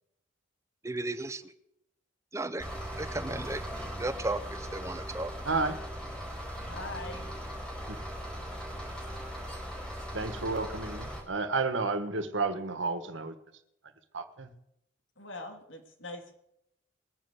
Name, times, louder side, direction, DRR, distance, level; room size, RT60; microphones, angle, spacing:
voice 1, 0.8-1.5 2.3-2.7 3.0-3.6 4.0-5.3, right 2 dB, 15° right, 12 dB, 0.6 m, -34 dB
sound 1, 2.6-11.2, equal, 5° left, 4.4 m, -39 dB
voice 2, 5.4-5.8 7.9-8.0 10.1-13.3 14.1-14.5, right 3 dB, 75° right, 9 dB, 1.5 m, -31 dB
voice 3, 6.7-7.3 15.2-16.3, left 2 dB, 75° left, 3 dB, 2.9 m, -42 dB
20.5 x 7.9 x 8.2 m, 0.81 s
head